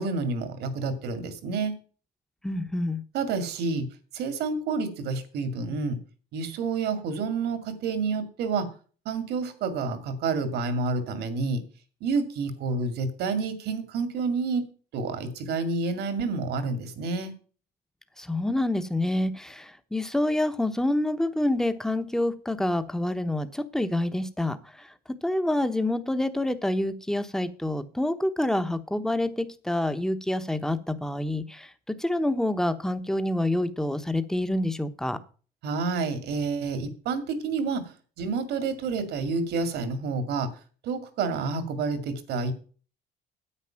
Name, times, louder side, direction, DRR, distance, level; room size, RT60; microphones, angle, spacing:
voice 1, 0.0-1.8 3.1-3.9 4.1-6.0 6.3-8.7 9.1-11.6 12.0-14.6 14.9-17.3 35.6-37.9 38.2-40.5 40.8-42.5, right 4 dB, 75° right, 10 dB, 2.2 m, -29 dB
voice 2, 2.4-3.0 18.2-24.9 25.2-35.2, left 1 dB, 5° left, 10 dB, 1.0 m, -27 dB
9.8 x 8.3 x 5.8 m, 0.39 s
cardioid pair, 110°, 17 cm